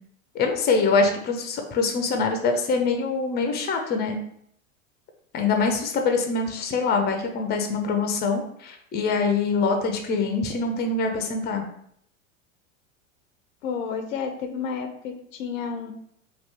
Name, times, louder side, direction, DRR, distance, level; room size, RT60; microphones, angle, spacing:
voice 1, 0.3-4.2 5.3-11.6, left 4 dB, 25° left, 4 dB, 0.5 m, -24 dB
voice 2, 13.6-15.9, left 6 dB, 80° left, 6 dB, 0.6 m, -31 dB
2.9 x 2.4 x 3.4 m, 0.69 s
hypercardioid pair, 90°, 39 cm